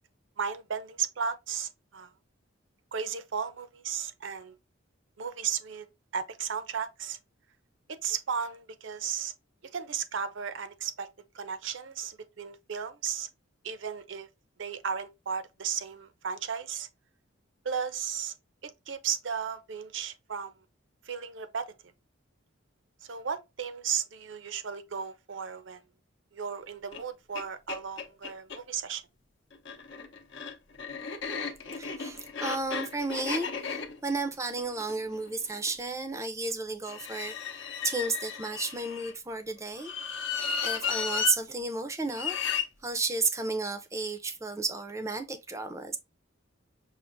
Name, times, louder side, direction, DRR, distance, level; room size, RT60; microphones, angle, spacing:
voice 1, 0.4-2.1 2.9-4.5 5.2-5.9 6.1-7.2 7.9-9.3 9.6-11.1 11.3-13.3 13.6-14.3 14.6-16.9 17.6-18.3 18.6-20.5 21.1-21.7 23.0-25.8 26.3-29.0, right 7 dB, 65° right, 0.6 m, -35 dB
sound 1, 26.9-27.0 27.3-27.4 27.7-28.6 29.5-35.7 36.8-39.1 39.8-41.3 42.1-42.7, left 6 dB, 60° left, 0.7 m, -34 dB
voice 2, 31.8-39.9 40.6-42.4 42.8-46.0, right 3 dB, 15° right, 0.5 m, -33 dB
5.8 x 2.5 x 2.5 m
head